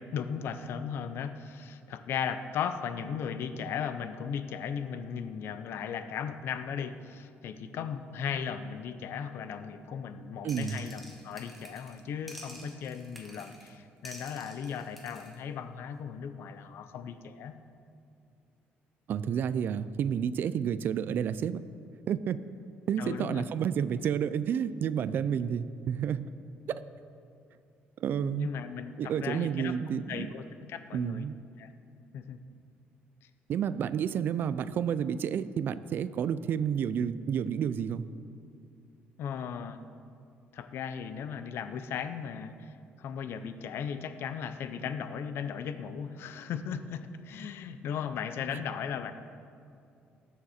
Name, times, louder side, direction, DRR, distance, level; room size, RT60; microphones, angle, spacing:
voice 1, 0.0-17.6 23.0-23.4 28.2-31.3 31.6-31.7 32.1-32.4 39.2-39.8 40.5-49.1, left 7 dB, 65° left, 10 dB, 0.6 m, -37 dB
voice 2, 10.4-10.8 19.1-21.6 22.1-22.4 22.9-26.3 26.7-26.8 28.0-28.5 29.0-30.3 30.9-31.4 33.5-38.0, right 8 dB, 50° right, 15 dB, 0.4 m, -30 dB
sound 1, 10.5-12.0 12.3-13.7 14.0-15.4, equal, ahead, 1.4 m, -49 dB
19.0 x 7.2 x 4.3 m, 2.5 s
cardioid pair, 140°, 4 cm